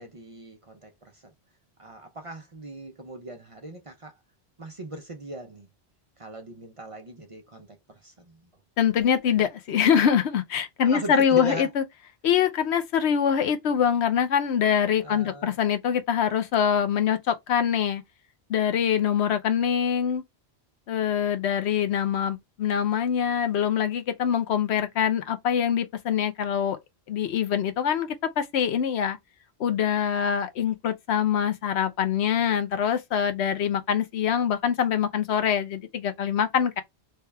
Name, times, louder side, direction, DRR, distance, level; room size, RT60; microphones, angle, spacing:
voice 1, 0.0-1.3 1.8-4.2 4.6-5.7 6.2-8.4 10.8-11.7 15.0-15.6, right 2 dB, 40° right, 0.5 m, -40 dB
voice 2, 8.8-11.8 12.2-18.0 18.5-20.2 20.9-26.8 27.1-28.1 28.4-29.2 29.6-36.8, left 8 dB, 85° left, 0.9 m, -24 dB
3.3 x 2.3 x 3.2 m
omnidirectional pair, 1.1 m